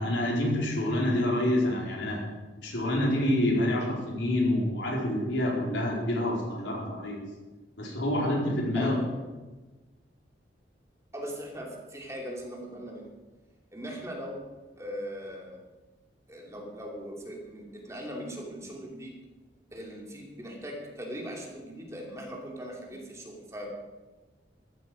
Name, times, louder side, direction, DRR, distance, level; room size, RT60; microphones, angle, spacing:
voice 1, 0.0-2.2 2.6-7.2 7.8-9.0, left 1 dB, 90° left, -3 dB, 4.5 m, -27 dB
voice 2, 8.7-9.2 11.1-13.1 13.7-14.5 14.8-15.6 16.3-19.1 19.7-23.7, equal, 15° right, -1 dB, 2.9 m, -39 dB
14.5 x 12.5 x 5.2 m, 1.2 s
head